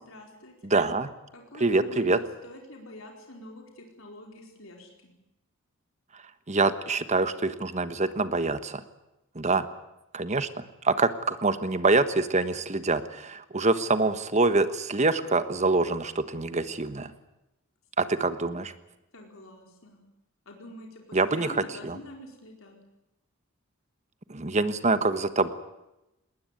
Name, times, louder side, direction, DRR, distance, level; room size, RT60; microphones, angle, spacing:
voice 1, 0.1-0.5 1.3-5.1 18.0-18.1 19.1-20.0 20.5-22.8, left 1 dB, 70° left, 1 dB, 4.5 m, -46 dB
voice 2, 0.6-1.1 1.6-2.2 6.5-8.8 9.3-9.7 10.1-17.1 18.0-18.7 21.1-21.6 21.8-22.0 24.3-25.5, right 3 dB, 35° right, 11 dB, 1.3 m, -25 dB
20.0 x 19.5 x 9.8 m, 0.93 s
head